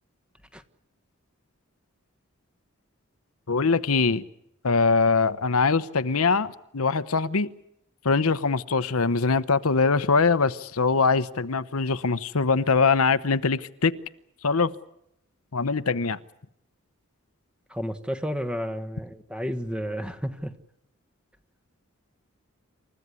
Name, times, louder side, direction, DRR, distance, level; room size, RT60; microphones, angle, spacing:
voice 1, 3.5-4.2 4.6-7.5 8.0-13.9 14.4-14.7 15.5-16.2, left 4 dB, 85° left, 13 dB, 1.0 m, -22 dB
voice 2, 17.7-20.5, equal, 5° right, 11 dB, 1.3 m, -31 dB
28.0 x 15.0 x 9.7 m, 0.78 s
head